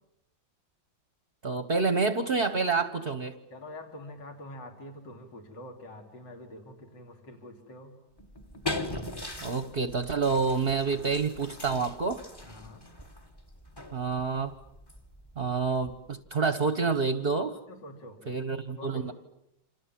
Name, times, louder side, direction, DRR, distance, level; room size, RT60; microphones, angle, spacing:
voice 1, 1.4-3.4 9.4-12.2 13.9-14.5 15.4-17.6 18.3-19.1, right 4 dB, 35° right, 11 dB, 1.2 m, -28 dB
voice 2, 3.5-8.0 12.4-12.9 17.7-18.3 18.8-19.1, left 1 dB, 60° left, 3 dB, 4.3 m, -45 dB
sound 1, 8.2-16.3, left 2 dB, 15° left, 1.5 m, -41 dB
28.5 x 27.5 x 7.6 m, 0.83 s
omnidirectional pair, 2.1 m